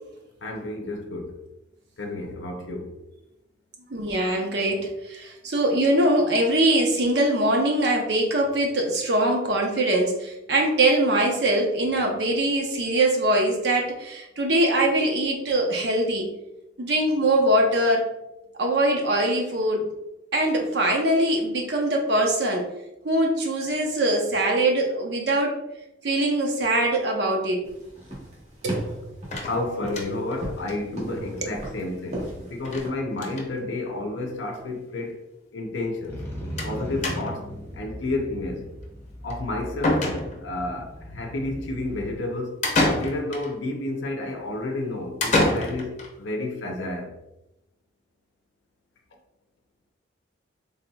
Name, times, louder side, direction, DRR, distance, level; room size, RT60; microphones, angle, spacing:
voice 1, 0.4-1.4 2.0-3.0 29.5-35.2 35.5-36.2 36.6-38.7 39.2-40.1 40.4-42.6 43.0-47.1, left 2 dB, 75° left, 0.6 m, -31 dB
voice 2, 3.9-16.3 16.8-18.0 18.6-19.9 20.3-22.6 23.0-25.6 26.0-27.6 28.6-29.1, right 1 dB, 60° right, 0.7 m, -22 dB
sound 1, 27.6-32.9, right 1 dB, 35° right, 1.2 m, -37 dB
sound 2, 29.3-30.3 30.7-30.8 31.1-31.2 31.4-31.5 32.6-32.9 33.1-33.5 34.4-34.5 34.7-34.8 36.6-36.8 37.0-37.5 39.3-39.4 39.8-40.6 42.6-43.5 45.2-46.1, left 1 dB, 40° left, 0.7 m, -26 dB
Motorcycle, 36.1-42.2, equal, 15° left, 1.2 m, -38 dB
4.1 x 3.5 x 2.3 m
head